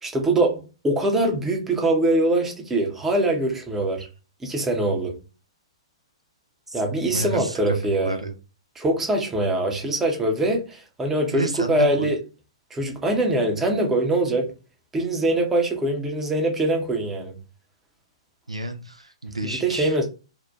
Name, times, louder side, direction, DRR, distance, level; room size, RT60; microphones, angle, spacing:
voice 1, 0.0-4.1 4.4-5.2 6.7-8.2 8.8-12.2 12.7-14.5 14.9-17.4 19.6-20.0, right 1 dB, 10° right, 0.6 m, -23 dB
voice 2, 6.7-8.4 11.3-12.1 18.5-20.0, right 1 dB, 85° right, 0.4 m, -31 dB
2.7 x 2.1 x 2.3 m
figure-of-eight pair, 115°, 3 cm